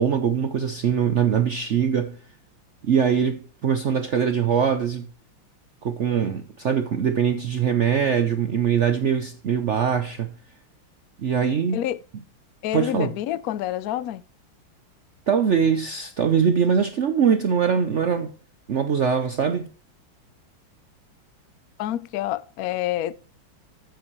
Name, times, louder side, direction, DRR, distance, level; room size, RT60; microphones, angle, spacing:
voice 1, 0.0-2.2 2.8-5.1 5.8-10.3 11.2-11.9 12.7-13.1 15.3-18.3 18.7-19.7, right 7 dB, 75° right, 0.6 m, -22 dB
voice 2, 12.6-14.2 21.8-23.2, left 12 dB, 90° left, 0.7 m, -27 dB
13.0 x 8.2 x 3.1 m
omnidirectional pair, 2.3 m